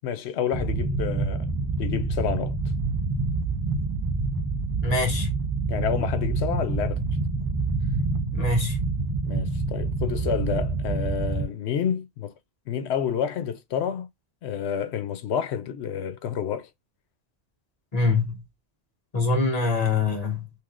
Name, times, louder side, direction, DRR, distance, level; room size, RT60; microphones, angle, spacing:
voice 1, 0.0-1.5 1.8-2.5 5.7-7.0 9.2-12.3 12.7-14.1 14.4-16.7, left 8 dB, 90° left, 0.9 m, -29 dB
sound 1, 0.5-11.4, right 3 dB, 25° right, 0.6 m, -27 dB
voice 2, 4.8-5.3 8.3-8.8 17.9-18.4 19.1-20.5, left 3 dB, 40° left, 1.1 m, -24 dB
3.2 x 2.8 x 2.4 m
omnidirectional pair, 1.1 m